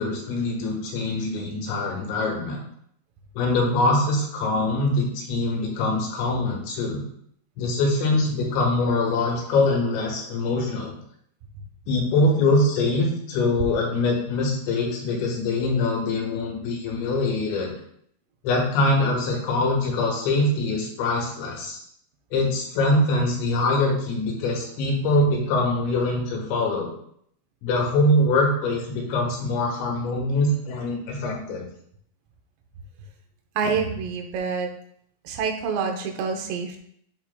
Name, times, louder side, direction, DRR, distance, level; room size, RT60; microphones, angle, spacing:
voice 1, 0.0-2.6 3.4-7.0 7.6-11.0 11.9-17.7 18.4-21.8 22.3-26.9 27.6-31.7, left 2 dB, 80° left, -1 dB, 3.8 m, -23 dB
voice 2, 33.6-34.7 35.3-36.8, right 5 dB, 80° right, 3 dB, 3.0 m, -27 dB
13.0 x 4.5 x 2.3 m, 0.68 s
omnidirectional pair, 5.1 m